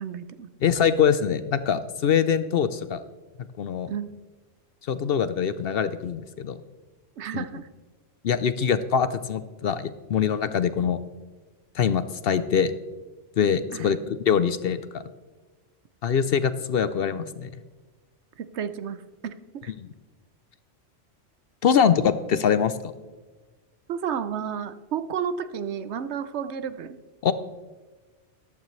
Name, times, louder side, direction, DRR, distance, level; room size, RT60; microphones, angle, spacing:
voice 1, 0.0-0.5 3.9-4.1 7.2-7.7 13.7-13.9 18.4-19.3 19.6-19.7 23.9-27.0, right 7 dB, 70° right, 12 dB, 0.9 m, -32 dB
voice 2, 0.6-3.0 3.6-3.9 4.9-6.6 7.3-7.4 8.2-11.0 11.7-12.7 13.4-15.0 16.0-17.5 19.8-19.9 21.6-22.8 27.2-27.3, left 7 dB, 60° left, 13 dB, 0.7 m, -23 dB
14.0 x 12.0 x 3.2 m, 1.3 s
omnidirectional pair, 1.2 m